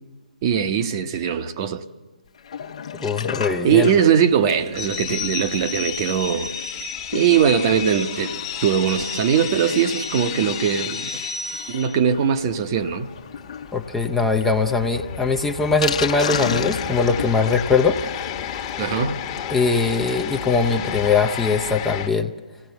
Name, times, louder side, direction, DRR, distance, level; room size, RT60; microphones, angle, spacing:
voice 1, 0.4-1.8 3.6-6.5 7.1-11.2 11.7-13.1 18.8-19.2, right 8 dB, 35° right, 0.9 m, -21 dB
Sink (filling or washing), 2.4-20.4 20.7-20.8 21.0-21.1 21.5-21.6, left 7 dB, 55° left, 1.1 m, -35 dB
voice 2, 2.9-3.9 13.7-18.0 19.5-22.3, left 4 dB, 5° left, 0.6 m, -21 dB
sound 1, 4.8-22.1, left 8 dB, 30° left, 1.4 m, -32 dB
24.5 x 17.5 x 8.0 m
figure-of-eight pair, 140°, 4 cm